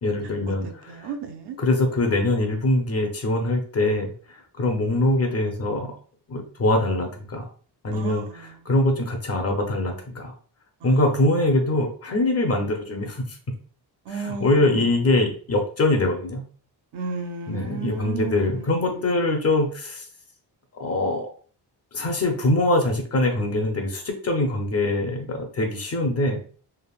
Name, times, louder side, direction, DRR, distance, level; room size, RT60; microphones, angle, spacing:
voice 1, 0.0-0.7 1.6-5.9 6.3-7.5 7.8-8.2 8.7-10.3 10.8-13.4 14.2-16.4 17.5-20.1 20.7-21.3 21.9-26.4, left 2 dB, 40° left, 3 dB, 0.5 m, -23 dB
voice 2, 0.9-1.6 7.9-8.6 10.8-11.1 14.1-15.1 16.9-19.0, right 5 dB, 75° right, 5 dB, 0.6 m, -34 dB
3.3 x 2.0 x 2.3 m, 0.42 s
wide cardioid pair, 175°, 41 cm